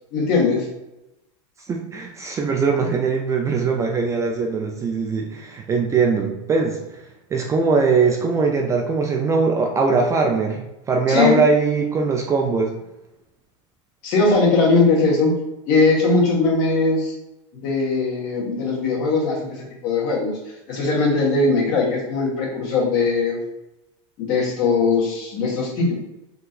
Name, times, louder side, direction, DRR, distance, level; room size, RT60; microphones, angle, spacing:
voice 1, 0.1-0.7 11.1-11.4 14.0-15.3 15.7-17.1 17.6-20.4 20.7-23.4 24.2-25.9, left 3 dB, 50° left, -3 dB, 1.4 m, -20 dB
voice 2, 1.7-6.8 7.3-12.7, right 4 dB, 20° right, 1 dB, 0.3 m, -21 dB
3.7 x 2.7 x 2.4 m, 0.93 s
supercardioid pair, 130°, 16 cm